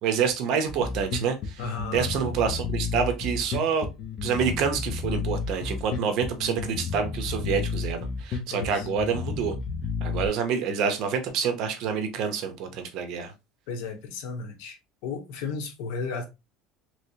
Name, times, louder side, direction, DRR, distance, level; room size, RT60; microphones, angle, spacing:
voice 1, 0.0-1.6 1.9-3.9 4.2-9.5 10.0-13.3, right 6 dB, 55° right, 0.8 m, -27 dB
Bass guitar, 0.7-10.3, left 5 dB, 45° left, 0.7 m, -32 dB
voice 2, 1.6-2.1 8.5-8.9 13.7-14.8 15.0-16.2, left 4 dB, 75° left, 1.0 m, -34 dB
3.2 x 3.1 x 2.8 m
cardioid pair, 140°, 0 cm